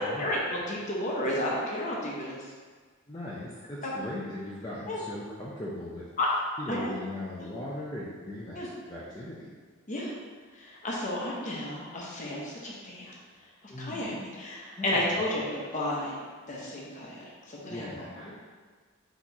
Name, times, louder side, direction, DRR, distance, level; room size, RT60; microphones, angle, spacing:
voice 1, 0.2-2.4 3.8-3.9 4.9-5.0 6.2-6.3 6.7-6.9 7.4-7.5 8.5-8.7 9.9-10.1 10.5-13.1 13.8-16.2 16.5-18.3, left 1 dB, 35° left, -4 dB, 0.8 m, -32 dB
voice 2, 3.1-6.0 6.6-8.6 8.9-9.5 13.7-14.3 14.8-15.2 17.7-18.3, left 1 dB, 15° left, -7 dB, 0.4 m, -39 dB
4.4 x 3.0 x 4.0 m, 1.5 s
head